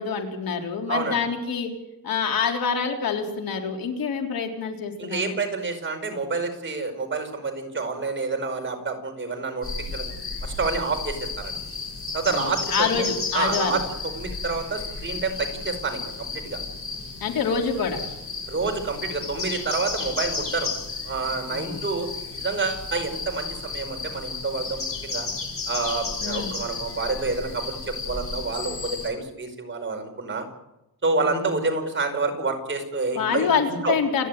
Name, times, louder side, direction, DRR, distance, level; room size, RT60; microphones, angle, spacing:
voice 1, 0.0-1.7 2.0-5.3 12.3-13.8 17.2-18.0 21.5-21.8 26.2-26.5 31.2-31.5 33.2-34.3, left 6 dB, 70° left, 3 dB, 3.9 m, -26 dB
voice 2, 5.0-10.1 10.4-11.6 12.1-13.1 13.3-16.6 18.5-20.7 21.0-22.1 22.4-25.3 25.7-30.5 31.0-33.6 33.8-33.9, right 4 dB, 30° right, 5 dB, 5.2 m, -28 dB
sound 1, 9.6-29.1, left 4 dB, 40° left, 6.5 m, -33 dB
29.0 x 11.0 x 9.3 m, 0.92 s
cardioid pair, 135°, 36 cm